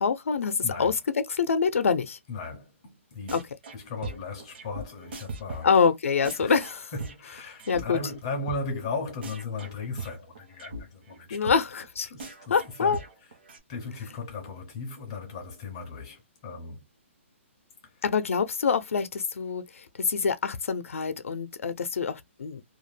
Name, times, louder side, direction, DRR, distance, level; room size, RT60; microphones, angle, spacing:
voice 1, 0.0-2.2 3.3-3.4 5.6-6.8 7.7-8.0 11.3-12.1 12.5-13.0 18.0-22.6, left 6 dB, 90° left, 0.5 m, -25 dB
voice 2, 0.6-1.0 2.3-3.4 3.7-5.7 6.4-6.6 6.9-11.7 12.0-13.0 13.7-16.8 17.8-18.0, left 3 dB, 25° left, 0.4 m, -37 dB
sound 1, 3.3-3.8 4.0-7.8 8.1-8.2 8.5-8.6 8.9-9.0 9.2-10.8 11.1-11.2 11.5-11.6 11.8-11.9 12.2-13.6, right 3 dB, 50° right, 0.8 m, -39 dB
2.3 x 2.1 x 3.1 m
hypercardioid pair, 175°, 7 cm